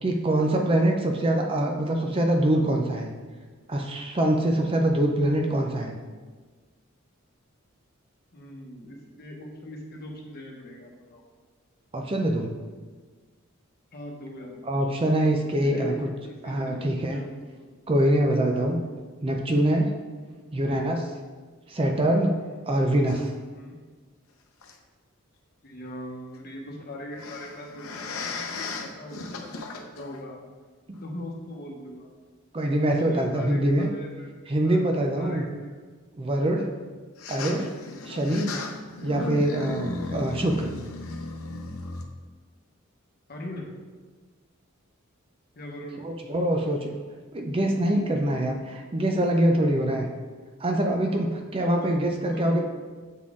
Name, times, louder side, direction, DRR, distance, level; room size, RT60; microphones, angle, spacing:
voice 1, 0.0-3.1 3.7-6.0 11.9-12.5 14.7-16.1 16.4-17.2 17.9-18.8 19.2-19.9 20.5-21.1 21.7-22.4 22.7-23.3 32.5-33.9 34.5-35.4 36.2-36.7 37.3-37.7 38.1-38.5 39.0-40.7 46.0-46.9 47.3-50.1 50.6-52.6, right 1 dB, 25° right, 2 dB, 0.4 m, -24 dB
voice 2, 8.3-11.2 13.9-14.8 15.3-17.3 17.5-17.6 20.3-20.5 22.4-22.6 23.5-23.8 25.6-30.4 31.0-32.1 32.9-34.3 34.6-34.9 35.1-35.8 36.5-36.7 38.0-38.3 39.0-39.3 39.9-40.0 43.3-43.7 45.5-46.0 49.6-49.7 51.6-52.6, left 1 dB, 45° left, -1 dB, 1.0 m, -40 dB
sound 1, 23.1-23.3 24.6-24.7 27.1-30.2 30.9-31.0 33.8-33.9 37.2-42.0, left 3 dB, 80° left, 0.7 m, -35 dB
7.3 x 4.1 x 3.6 m, 1.4 s
head